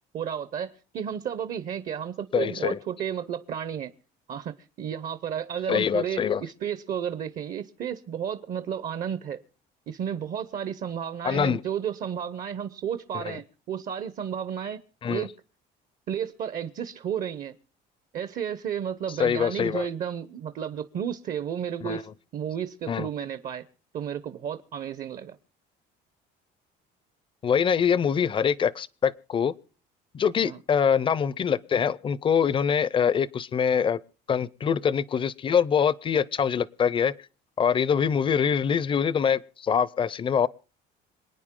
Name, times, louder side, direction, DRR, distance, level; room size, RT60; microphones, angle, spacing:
voice 1, 0.1-3.9 4.3-9.4 9.9-14.8 15.1-15.3 16.1-17.6 18.1-22.1 22.3-23.7 23.9-25.4 30.4-30.6, right 8 dB, 50° right, 0.8 m, -32 dB
voice 2, 2.3-2.8 5.7-6.4 11.2-11.6 13.1-13.4 15.0-15.3 19.2-19.9 21.8-22.0 22.9-23.1 27.4-29.5 30.1-34.0 34.3-37.1 37.6-40.5, left 7 dB, 30° left, 0.6 m, -24 dB
27.0 x 9.4 x 3.7 m
cardioid pair, 140°, 18 cm